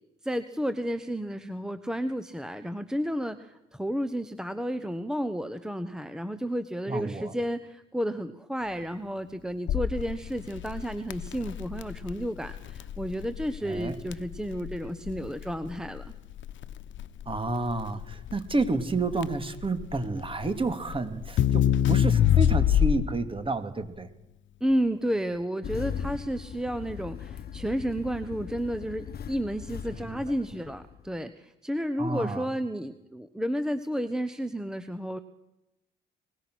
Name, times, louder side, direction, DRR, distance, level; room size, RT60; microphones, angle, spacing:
voice 1, 0.2-16.1 24.6-35.2, equal, 5° right, 10 dB, 1.2 m, -32 dB
voice 2, 6.9-7.3 13.6-14.0 17.3-24.1 29.9-30.2 32.0-32.5, right 3 dB, 25° right, 9 dB, 2.5 m, -30 dB
Crackle, 9.7-23.3, left 10 dB, 70° left, 1.1 m, -26 dB
Engine starting, 25.6-31.2, left 8 dB, 50° left, 1.3 m, -39 dB
23.5 x 21.0 x 6.4 m, 0.90 s
cardioid pair, 90°, 20 cm